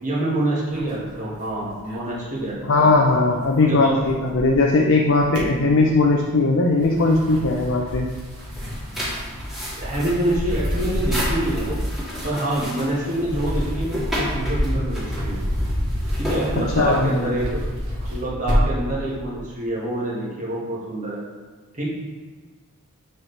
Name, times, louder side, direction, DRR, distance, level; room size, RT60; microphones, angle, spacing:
voice 1, 0.0-2.9 3.7-4.0 5.5-5.8 9.8-11.8 12.2-15.4 16.2-17.8 18.1-21.2 21.7-21.9, right 1 dB, 35° right, -5 dB, 1.6 m, -26 dB
sound 1, 0.7-2.9 3.1-4.7 5.1-6.1 6.7-18.9, equal, 85° right, 1.6 m, -28 dB
voice 2, 2.6-8.1 16.8-17.1, left 3 dB, 60° left, 0 dB, 0.5 m, -18 dB
sound 2, 8.1-17.2, equal, ahead, 1.8 m, -32 dB
7.3 x 4.5 x 3.3 m, 1.4 s
head